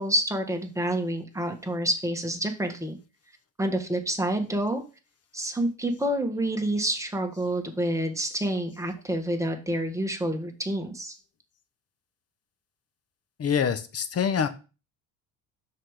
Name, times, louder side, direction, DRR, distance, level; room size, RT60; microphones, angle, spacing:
voice 1, 0.0-3.0 3.6-4.8 5.3-11.1, right 1 dB, 10° right, 3 dB, 1.6 m, -28 dB
voice 2, 13.4-14.5, left 7 dB, 40° left, 11 dB, 1.1 m, -25 dB
5.8 x 4.9 x 4.9 m, 0.32 s
supercardioid pair, 85°, 39 cm